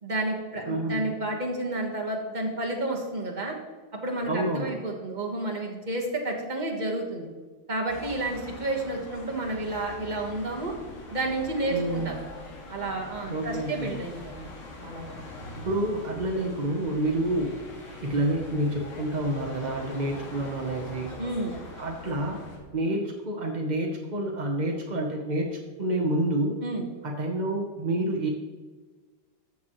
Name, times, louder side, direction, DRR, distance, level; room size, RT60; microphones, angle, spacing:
voice 1, 0.0-3.6 4.0-7.3 7.7-10.7 11.1-12.2 12.7-14.5 14.8-15.1 21.2-21.6 26.6-26.9, right 2 dB, 25° right, 0 dB, 1.2 m, -31 dB
voice 2, 0.6-1.1 4.3-4.7 11.7-12.1 13.3-13.9 15.6-17.5 18.0-21.1 21.8-22.5 22.7-26.6 27.0-28.3, right 1 dB, 50° right, 1 dB, 0.5 m, -28 dB
sound 1, 7.9-22.6, left 2 dB, 85° left, 2.8 m, -43 dB
13.5 x 7.3 x 3.1 m, 1.4 s
omnidirectional pair, 2.3 m